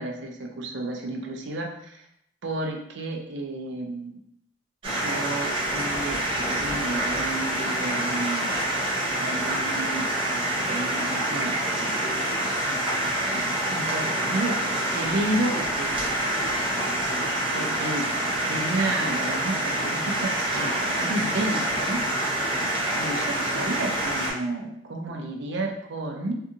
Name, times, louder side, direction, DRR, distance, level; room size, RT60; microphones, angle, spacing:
voice 1, 0.0-2.1 2.4-4.2 4.8-8.5 9.2-12.0 13.3-15.9 17.3-22.1 22.9-26.4, right 2 dB, 65° right, 2 dB, 0.4 m, -32 dB
sound 1, 4.8-24.3, right 1 dB, 30° right, 0.9 m, -27 dB
2.6 x 2.4 x 2.6 m, 0.75 s
head